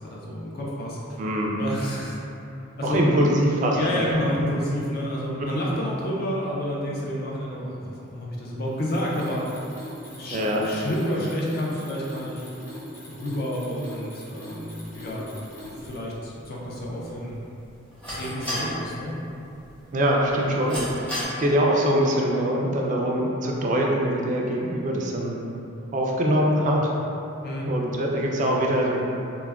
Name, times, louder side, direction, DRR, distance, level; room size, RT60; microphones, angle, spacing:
voice 1, 0.0-1.2 1.6-2.2 2.8-3.0 3.7-9.4 10.2-12.5 13.1-15.2 15.6-17.4 18.1-19.2 27.4-27.7, equal, 50° left, -4 dB, 0.5 m, -30 dB
voice 2, 1.2-1.6 2.8-4.1 10.3-10.6 19.9-25.4 25.9-26.9 27.7-29.0, equal, 40° right, -1 dB, 0.3 m, -23 dB
Mechanisms, 8.7-16.2, left 1 dB, 80° left, 1.2 m, -42 dB
sound 1, 14.8-21.2, equal, 5° left, 0.7 m, -37 dB
2.2 x 2.1 x 3.4 m, 2.8 s
head